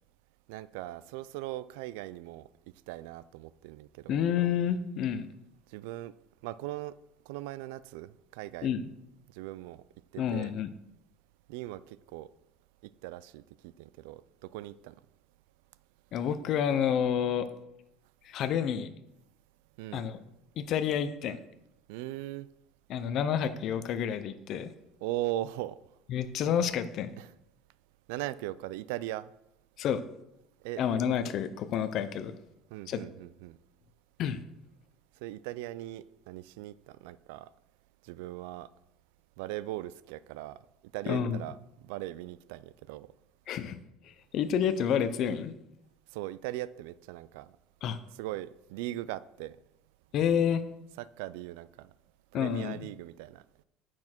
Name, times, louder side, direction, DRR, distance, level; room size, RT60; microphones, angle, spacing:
voice 1, 0.5-2.5 2.9-4.2 5.7-6.1 6.4-6.9 7.3-8.7 9.3-9.8 10.1-10.5 11.5-12.3 13.0-15.0 19.8-20.0 21.9-22.5 25.0-25.8 27.2-27.3 28.1-29.3 30.6-30.8 32.7-33.6 35.2-37.5 38.0-38.7 39.4-40.6 40.9-43.1 46.1-47.5 48.1-49.6 51.0-51.9 52.3-53.6, right 16 dB, 90° right, 0.3 m, -39 dB
voice 2, 4.1-5.3 8.6-8.9 10.2-10.7 16.1-17.5 18.2-18.9 19.9-20.2 20.6-21.4 22.9-24.7 26.1-27.1 29.8-30.0 30.8-32.4 32.9-33.0 34.2-34.4 41.1-41.4 43.5-43.8 44.0-45.5 47.8-48.0 50.1-50.6 52.3-52.9, left 8 dB, 45° left, 0.6 m, -29 dB
8.6 x 6.0 x 4.4 m
cardioid pair, 160°, 0 cm